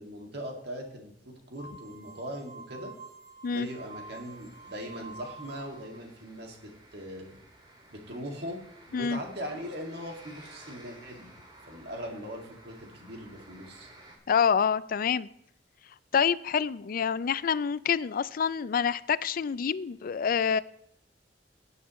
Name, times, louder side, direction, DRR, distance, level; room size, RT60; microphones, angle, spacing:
voice 1, 0.0-2.9 3.5-6.6 6.9-7.3 7.9-8.6 8.9-11.3 11.6-13.9, equal, 65° right, 1 dB, 2.2 m, -40 dB
sound 1, 1.6-5.9, right 3 dB, 85° right, 5.5 m, -48 dB
sound 2, 3.5-14.2, right 1 dB, 25° right, 2.1 m, -54 dB
voice 2, 14.3-15.3 16.1-20.6, left 7 dB, 50° left, 18 dB, 0.4 m, -27 dB
17.5 x 8.2 x 3.1 m, 0.74 s
head